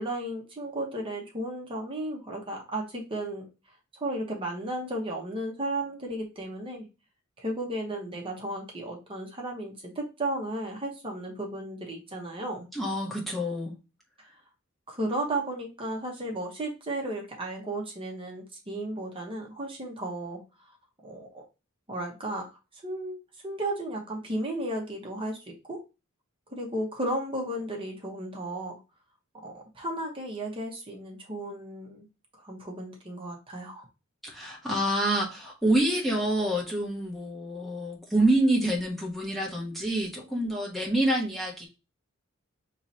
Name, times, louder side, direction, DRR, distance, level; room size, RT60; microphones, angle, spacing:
voice 1, 0.0-3.4 3.9-6.9 7.4-12.6 14.2-14.3 14.9-20.4 21.0-21.4 21.9-23.2 23.4-25.8 26.5-28.8 29.4-32.1 32.4-33.9, right 1 dB, 25° right, 0 dB, 1.1 m, -34 dB
voice 2, 12.7-13.7 34.2-41.7, right 1 dB, ahead, -4 dB, 1.1 m, -27 dB
5.7 x 3.1 x 2.8 m, 0.28 s
head